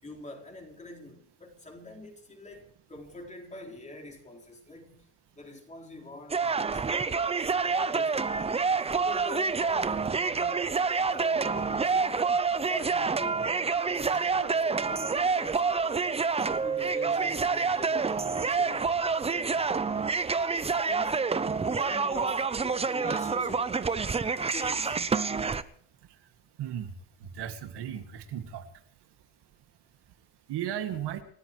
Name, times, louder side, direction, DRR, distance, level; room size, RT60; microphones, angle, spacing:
voice 1, 0.0-5.0 5.3-12.2 12.7-16.1 16.6-18.9 19.3-19.8 20.9-21.3 21.7-23.8 24.5-25.1, left 2 dB, 15° left, 4.1 m, -45 dB
sound 1, 6.3-25.6, right 5 dB, 15° right, 0.6 m, -28 dB
voice 2, 26.6-26.9 27.4-28.6 30.5-31.2, right 10 dB, 65° right, 2.2 m, -35 dB
30.0 x 14.0 x 3.2 m
cardioid pair, 150°, 44 cm